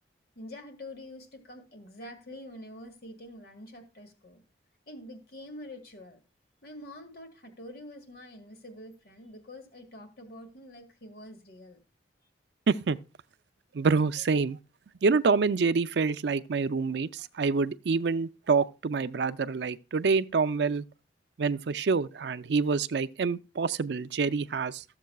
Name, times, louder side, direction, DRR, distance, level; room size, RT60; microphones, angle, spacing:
voice 1, 0.4-4.4 4.9-6.2 6.6-11.8, left 1 dB, 55° left, 1.8 m, -46 dB
voice 2, 12.7-13.0 13.7-14.6 15.0-20.8 21.4-24.8, right 4 dB, 65° right, 0.4 m, -27 dB
14.0 x 7.3 x 2.3 m
head